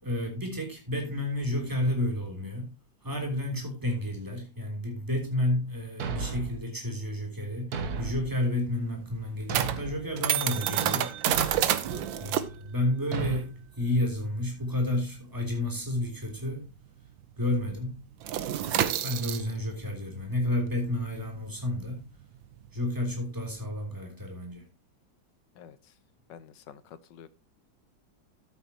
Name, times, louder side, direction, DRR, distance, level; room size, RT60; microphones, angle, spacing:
voice 1, 0.0-2.7 3.0-11.1 12.2-16.7 17.4-18.0 19.0-22.1 22.7-24.7, left 1 dB, 10° right, 3.3 m, -31 dB
Thump thud, 6.0-6.6 7.7-8.3 9.5-10.0 11.3-11.7 13.1-13.4, right 6 dB, 55° right, 1.5 m, -33 dB
sound 1, 8.0-17.0 17.2-17.5 17.8-23.5, right 11 dB, 85° right, 1.6 m, -31 dB
voice 2, 11.9-12.2 25.6-25.9 26.3-27.3, left 8 dB, 75° left, 1.5 m, -49 dB
13.0 x 8.2 x 2.9 m
omnidirectional pair, 2.0 m